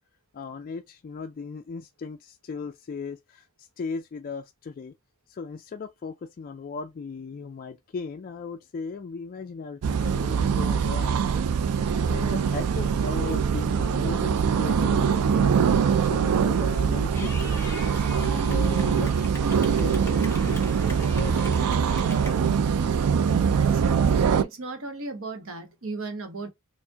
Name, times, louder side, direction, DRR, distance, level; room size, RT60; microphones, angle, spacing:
voice 1, 0.3-4.9 5.3-11.2 12.1-15.5 16.0-17.5 18.1-20.8 21.1-21.8, left 5 dB, 40° left, 0.3 m, -37 dB
sound 1, 9.8-24.4, right 6 dB, 90° right, 0.4 m, -23 dB
Clapping / Cheering, 17.1-22.3, left 2 dB, 10° left, 0.7 m, -42 dB
voice 2, 23.5-24.0 24.4-26.5, right 3 dB, 65° right, 0.9 m, -36 dB
4.4 x 2.1 x 2.8 m
head